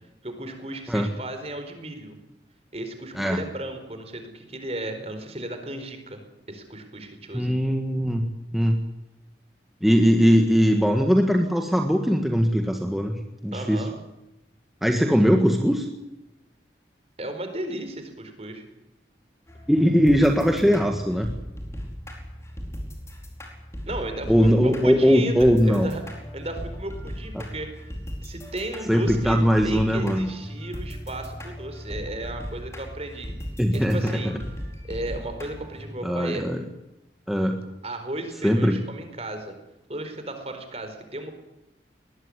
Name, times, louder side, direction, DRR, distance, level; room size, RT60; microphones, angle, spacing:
voice 1, 0.2-2.2 2.7-6.2 6.5-7.5 13.5-14.0 17.2-18.6 23.9-26.0 26.3-27.8 28.2-29.4 29.6-33.3 33.7-34.3 34.8-36.5 37.8-39.5 39.9-41.3, right 1 dB, 35° right, 7 dB, 4.4 m, -34 dB
voice 2, 7.3-8.2 8.5-8.8 9.8-13.1 13.4-13.8 14.8-15.9 19.7-21.3 24.3-25.9 27.3-27.4 28.9-30.3 33.6-34.0 36.0-36.6 37.3-37.6 38.4-38.7, equal, ahead, 2 dB, 1.6 m, -20 dB
sound 1, 19.5-35.9, equal, 15° left, 4.6 m, -37 dB
21.0 x 20.0 x 9.9 m, 0.94 s
head